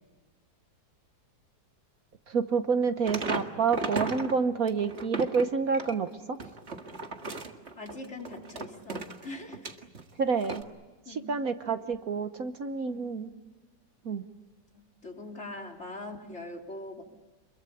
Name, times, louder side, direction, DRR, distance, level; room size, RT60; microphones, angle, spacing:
voice 1, 2.3-6.4 10.2-10.6 11.1-13.3 14.0-14.2, right 5 dB, 60° right, 9 dB, 1.4 m, -28 dB
sound 1, 3.1-4.4 4.7-10.0 10.4-10.6, right 3 dB, 40° right, 2.0 m, -36 dB
voice 2, 7.8-9.7 11.1-11.3 12.9-13.1 14.7-17.0, left 2 dB, 40° left, 1 dB, 4.0 m, -42 dB
28.0 x 22.5 x 8.6 m, 1.2 s
omnidirectional pair, 1.9 m